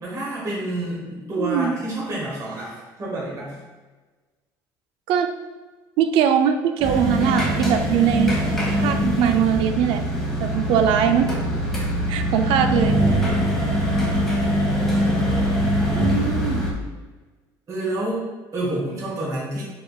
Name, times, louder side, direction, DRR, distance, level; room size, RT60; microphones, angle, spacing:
voice 1, 0.0-3.6 14.7-15.7 17.7-19.6, right 1 dB, 35° right, -5 dB, 1.4 m, -29 dB
voice 2, 1.4-1.7 5.1-5.3 6.0-8.4 8.8-10.0 10.4-11.4 12.1-13.0 15.9-16.6, right 8 dB, 75° right, 8 dB, 0.4 m, -21 dB
sound 1, 6.8-16.7, equal, 5° left, 1.2 m, -22 dB
4.4 x 3.5 x 2.3 m, 1.3 s
supercardioid pair, 90°, 9 cm